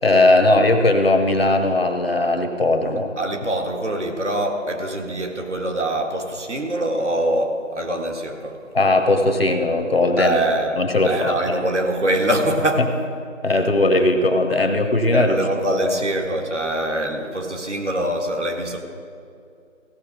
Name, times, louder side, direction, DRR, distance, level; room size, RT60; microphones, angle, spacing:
voice 1, 0.0-3.1 8.7-10.4 10.8-11.6 13.4-15.3 15.7-16.0, left 2 dB, 50° left, 5 dB, 1.1 m, -18 dB
voice 2, 3.2-8.6 10.2-12.9 15.1-18.8, right 1 dB, 65° right, 2 dB, 1.7 m, -24 dB
16.5 x 6.3 x 6.1 m, 2.4 s
figure-of-eight pair, 165°, 38 cm